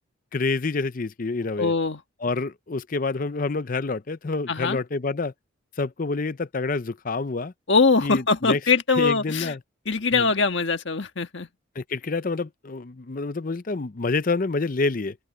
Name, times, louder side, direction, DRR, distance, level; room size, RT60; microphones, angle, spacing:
voice 1, 0.3-1.7 2.2-5.3 5.8-7.5 8.0-8.6 9.0-9.6 10.1-10.3 11.8-15.2, left 3 dB, 40° left, 0.6 m, -27 dB
voice 2, 1.6-2.0 4.5-4.8 7.7-9.5 9.8-11.5, left 4 dB, 60° left, 1.6 m, -22 dB
open air
head